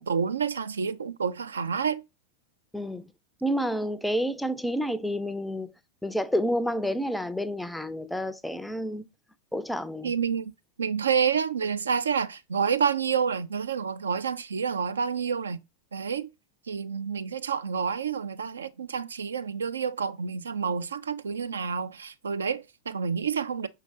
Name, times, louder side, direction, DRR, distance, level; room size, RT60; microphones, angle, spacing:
voice 1, 0.0-2.0 10.0-10.5 10.8-15.6 15.9-16.3 16.7-23.7, right 6 dB, 70° right, 0.3 m, -28 dB
voice 2, 2.7-3.1 3.4-5.7 6.0-9.1 9.5-10.1, equal, ahead, 0.4 m, -29 dB
5.5 x 3.2 x 2.5 m
figure-of-eight pair, 90°, 0 cm